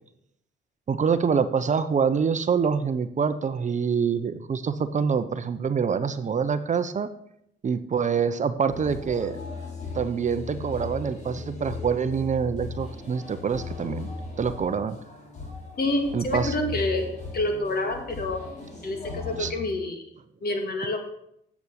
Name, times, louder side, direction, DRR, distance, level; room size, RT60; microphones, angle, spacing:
voice 1, 0.9-7.1 7.6-9.4 9.9-14.1 14.4-15.0 16.1-16.5 19.4-19.5, right 6 dB, 40° right, 11 dB, 0.7 m, -25 dB
sound 1, 8.7-19.5, left 4 dB, 35° left, 3.1 m, -37 dB
voice 2, 15.8-17.1 17.3-18.4 18.8-20.0 20.4-21.0, left 2 dB, 50° left, 5 dB, 2.1 m, -27 dB
8.6 x 7.1 x 6.3 m, 0.74 s
cardioid pair, 90°, 20 cm